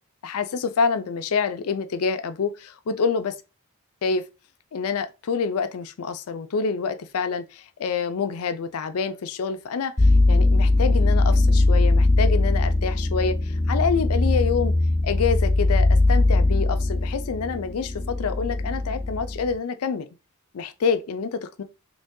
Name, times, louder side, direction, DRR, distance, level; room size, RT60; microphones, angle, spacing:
voice 1, 0.2-3.3 4.0-4.2 4.7-14.7 15.0-20.1 20.5-21.6, left 5 dB, 80° left, 0.4 m, -27 dB
sound 1, 10.0-19.6, left 2 dB, 15° left, 0.5 m, -20 dB
3.0 x 2.6 x 3.6 m
head